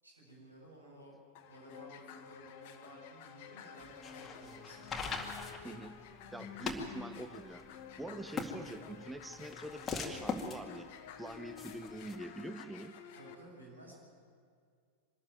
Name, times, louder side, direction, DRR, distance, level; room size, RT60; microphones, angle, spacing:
voice 1, 0.0-1.2 1.5-4.9 13.1-14.0, equal, 80° right, -3 dB, 7.2 m, -54 dB
sound 1, 1.3-13.3, left 8 dB, 45° left, 1.4 m, -51 dB
sound 2, 3.8-12.2, left 4 dB, 20° left, 2.1 m, -42 dB
voice 2, 5.6-6.0 6.3-7.6 8.0-10.9 11.2-13.0, right 1 dB, 5° right, 9 dB, 0.8 m, -45 dB
24.5 x 13.5 x 9.2 m, 2.2 s
figure-of-eight pair, 90°, 0 cm